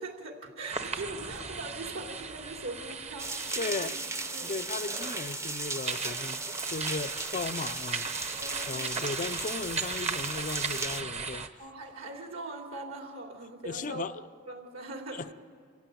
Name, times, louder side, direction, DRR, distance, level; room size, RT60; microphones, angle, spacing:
voice 1, 0.0-3.9 4.3-4.7 8.4-9.0 11.6-14.1 14.5-15.2, right 2 dB, 70° right, 3 dB, 3.4 m, -41 dB
sound 1, 0.7-11.5, right 5 dB, 30° right, 1.0 m, -38 dB
sound 2, 3.2-11.0, right 3 dB, 15° right, 0.7 m, -36 dB
voice 2, 3.6-3.9 4.4-8.4 8.7-11.5 13.6-14.2 15.1-15.3, left 4 dB, 40° left, 11 dB, 0.5 m, -36 dB
27.0 x 15.5 x 9.1 m, 2.1 s
head